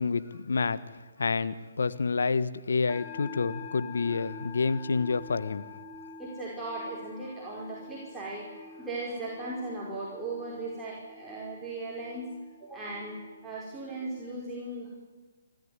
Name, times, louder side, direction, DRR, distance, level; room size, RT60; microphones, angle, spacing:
voice 1, 0.0-5.7, left 4 dB, 75° left, 1.3 m, -29 dB
sound 1, 2.9-14.3, left 3 dB, 15° left, 4.1 m, -47 dB
voice 2, 6.2-12.3 12.6-14.9, right 2 dB, 10° right, 5.2 m, -38 dB
26.5 x 13.5 x 9.7 m
hypercardioid pair, 140°, 0 cm